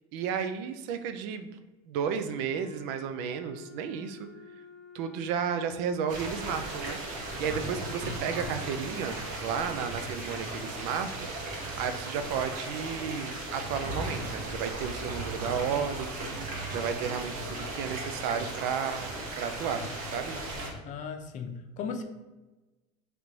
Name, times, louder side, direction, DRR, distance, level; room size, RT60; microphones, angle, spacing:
voice 1, 0.1-1.5 1.9-4.3 4.9-19.8 20.1-20.4, right 7 dB, 75° right, 8 dB, 0.4 m, -33 dB
Wind instrument woodwind instrument, 2.3-6.9, left 4 dB, ahead, 1.1 m, -51 dB
sound 1, 6.1-20.7, right 2 dB, 55° right, 1.0 m, -36 dB
voice 2, 20.9-22.0, left 5 dB, 50° left, 6 dB, 0.5 m, -36 dB
3.3 x 3.1 x 3.8 m, 1.1 s
supercardioid pair, 115°, 17 cm